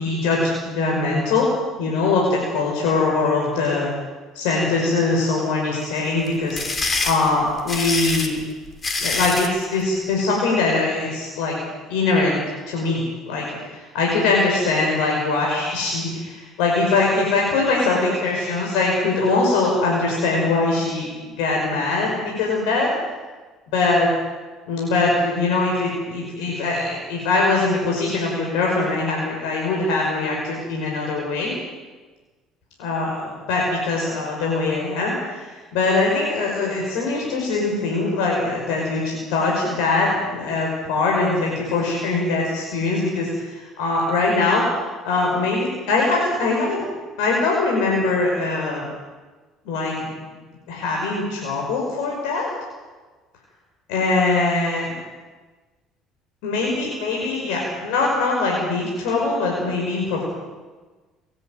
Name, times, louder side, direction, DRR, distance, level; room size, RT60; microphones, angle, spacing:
voice 1, 0.0-1.5 1.8-3.9 4.3-6.6 7.0-8.4 9.0-11.6 11.9-12.4 12.7-13.5 13.7-22.9 23.7-24.1 24.7-31.5 32.8-44.6 45.0-46.8 47.2-48.8 49.6-50.0 50.7-52.5 53.9-54.9 56.4-60.2, left 3 dB, 85° left, -2 dB, 5.5 m, -22 dB
sound 1, 6.3-9.6, left 3 dB, 30° left, 3.2 m, -25 dB
29.0 x 11.0 x 9.2 m, 1.3 s
supercardioid pair, 85°, 0 cm